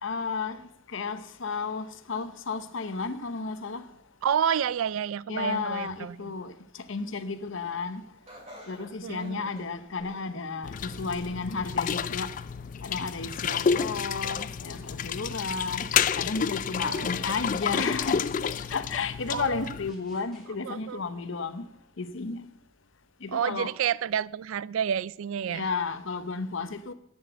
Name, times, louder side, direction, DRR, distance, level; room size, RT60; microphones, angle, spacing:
voice 1, 0.0-3.9 5.3-8.1 8.7-12.3 12.8-18.3 18.7-21.7 22.0-22.5 23.2-23.7 25.5-26.9, left 4 dB, 65° left, 0.8 m, -33 dB
voice 2, 4.2-6.3 9.0-9.5 13.5-13.7 16.8-17.1 19.3-19.7 20.6-21.0 23.3-25.7, right 8 dB, 80° right, 0.4 m, -30 dB
Laughter, 8.3-10.4 10.9-11.5 12.0-12.1 13.0-13.1, equal, 30° right, 2.8 m, -50 dB
sound 1, 10.6-19.9, left 7 dB, 40° left, 0.3 m, -30 dB
sound 2, 13.0-20.5, equal, ahead, 2.9 m, -55 dB
8.8 x 7.7 x 8.0 m
head